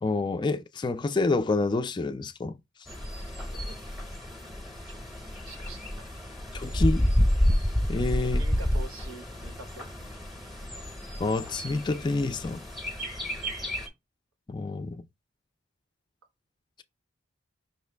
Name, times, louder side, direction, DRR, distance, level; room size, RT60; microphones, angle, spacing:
voice 1, 0.0-2.6 6.5-7.1 7.9-8.4 11.2-12.6 14.5-15.0, left 3 dB, 20° left, 0.3 m, -28 dB
Bird, 2.9-13.9, equal, ahead, 0.7 m, -30 dB
voice 2, 4.9-6.1 8.2-9.9 10.7-10.8, right 3 dB, 80° right, 0.9 m, -46 dB
5.4 x 2.2 x 3.3 m
head